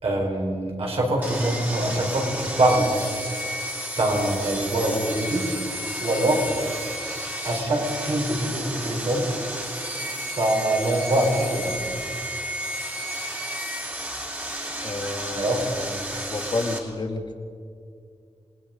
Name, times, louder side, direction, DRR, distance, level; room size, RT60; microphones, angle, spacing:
voice 1, 0.0-2.9 4.0-5.5 6.0-6.5 7.4-9.3 10.3-11.8 15.3-15.6, right 1 dB, 60° right, -1 dB, 5.0 m, -24 dB
Sawing, 1.2-16.8, equal, 15° right, 2.8 m, -32 dB
voice 2, 14.8-15.6 15.9-17.3, left 2 dB, 45° left, 3 dB, 1.9 m, -30 dB
28.0 x 20.0 x 5.3 m, 2.3 s
wide cardioid pair, 150°, 11 cm